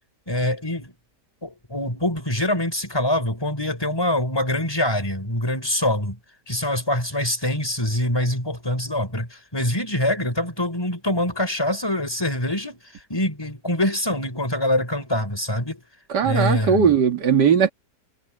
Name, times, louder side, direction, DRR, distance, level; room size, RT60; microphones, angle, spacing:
voice 1, 0.3-0.9 1.4-6.2 6.5-12.8 13.1-15.8 16.2-16.9, left 1 dB, 15° left, 5.6 m, -24 dB
voice 2, 16.1-17.7, right 7 dB, 75° right, 2.4 m, -18 dB
omnidirectional pair, 1.8 m